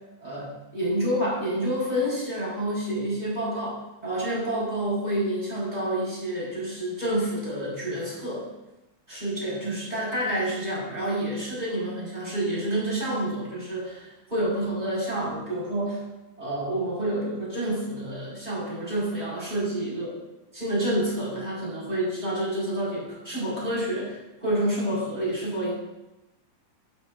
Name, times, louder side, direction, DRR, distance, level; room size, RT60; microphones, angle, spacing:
voice 1, 0.2-8.5 9.1-16.0 16.4-20.1 20.5-25.7, right 1 dB, 10° right, -6 dB, 4.7 m, -28 dB
15.0 x 12.0 x 2.6 m, 1.0 s
omnidirectional pair, 4.4 m